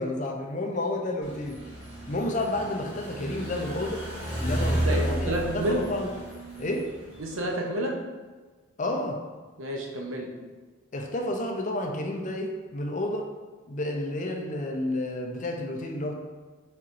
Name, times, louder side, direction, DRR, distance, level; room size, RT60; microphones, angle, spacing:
voice 1, 0.0-1.6 2.1-4.1 4.4-6.1 6.6-6.9 8.8-9.2 10.9-13.3 13.7-16.1, left 1 dB, 40° left, 2 dB, 0.5 m, -30 dB
sound 1, 1.2-7.4, right 1 dB, 30° right, 1.4 m, -32 dB
voice 2, 4.8-5.9 7.2-8.0 9.6-10.3, right 1 dB, 90° right, 1 dB, 0.7 m, -29 dB
4.4 x 3.8 x 2.5 m, 1.3 s
head